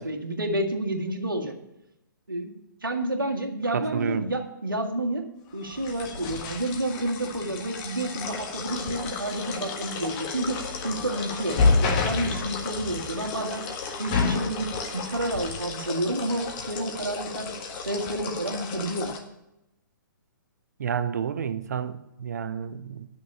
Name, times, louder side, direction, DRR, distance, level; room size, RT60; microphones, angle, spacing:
voice 1, 0.0-1.5 2.3-2.5 2.8-5.2 5.5-13.7 14.0-17.5 17.9-19.1, right 1 dB, 85° right, 1.8 m, -30 dB
voice 2, 3.7-4.3 20.8-23.1, right 7 dB, 55° right, 0.7 m, -30 dB
sound 1, 5.6-19.2, left 4 dB, 30° left, 1.5 m, -30 dB
11.0 x 6.5 x 7.2 m
figure-of-eight pair, 125°, 11 cm